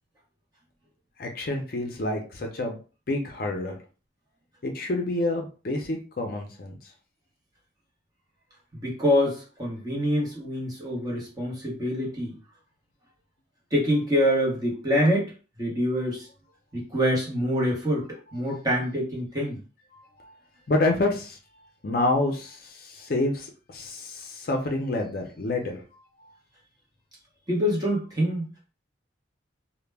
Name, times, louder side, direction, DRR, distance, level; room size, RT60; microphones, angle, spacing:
voice 1, 1.2-2.8 3.1-3.8 4.6-6.7 20.2-20.3 20.7-21.4 21.8-25.8, left 2 dB, 50° left, 2 dB, 0.5 m, -28 dB
voice 2, 8.7-12.3 13.7-15.3 15.6-16.3 16.7-19.6 27.5-28.5, equal, 20° right, -3 dB, 0.8 m, -25 dB
2.1 x 2.0 x 3.3 m, 0.35 s
head